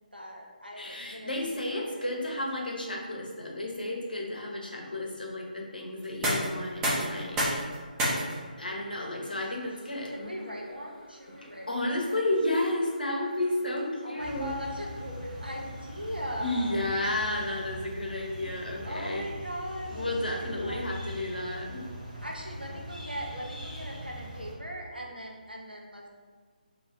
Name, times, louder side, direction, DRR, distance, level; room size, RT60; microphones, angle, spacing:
voice 1, 0.1-2.5 10.2-12.2 14.0-16.9 18.8-20.9 22.2-26.1, equal, 90° right, -1 dB, 0.8 m, -40 dB
voice 2, 0.8-7.6 8.6-10.3 11.4-14.5 16.4-19.3 19.9-21.8, left 1 dB, 70° left, 0 dB, 0.8 m, -32 dB
sound 1, 6.0-17.8, equal, 10° right, 0.6 m, -37 dB
sound 2, 14.2-24.5, right 1 dB, 50° right, 1.3 m, -41 dB
3.0 x 2.5 x 4.0 m, 1.5 s
figure-of-eight pair, 150°, 5 cm